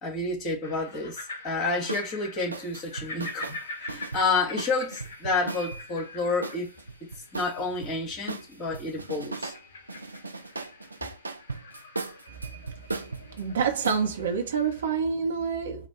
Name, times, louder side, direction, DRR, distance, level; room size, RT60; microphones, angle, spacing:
voice 1, 0.0-3.6 3.8-6.7 7.3-9.5, left 3 dB, 30° left, 2.5 m, -29 dB
sound 1, 0.6-14.9, left 2 dB, 60° left, 1.2 m, -45 dB
sound 2, 1.9-2.1 2.5-5.8 6.4-7.9 8.3-9.6 9.9-14.0, right 3 dB, 80° right, 0.5 m, -37 dB
voice 2, 13.4-15.9, right 6 dB, 65° right, 1.0 m, -27 dB
4.9 x 2.5 x 4.4 m
figure-of-eight pair, 90°, 0 cm